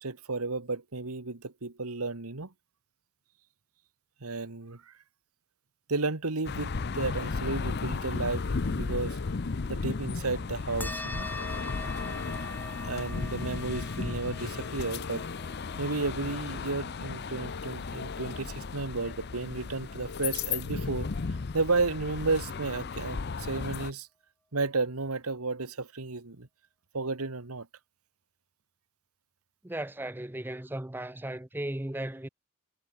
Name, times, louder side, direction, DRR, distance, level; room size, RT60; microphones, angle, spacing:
voice 1, 0.0-2.5 4.2-4.9 5.9-9.2 9.7-11.3 12.8-15.3 15.8-21.1 21.5-24.1 24.5-26.5 26.9-27.7, right 3 dB, 85° right, 1.6 m, -33 dB
sound 1, 6.4-23.9, left 4 dB, 50° left, 0.6 m, -35 dB
sound 2, 8.4-9.4 11.4-12.4 14.4-15.4 17.4-18.4 18.9-19.0 20.1-21.1 23.1-23.2, left 4 dB, 80° left, 0.8 m, -46 dB
sound 3, 10.8-19.7, left 2 dB, 10° left, 4.1 m, -44 dB
voice 2, 29.6-32.3, right 1 dB, 10° right, 0.6 m, -36 dB
head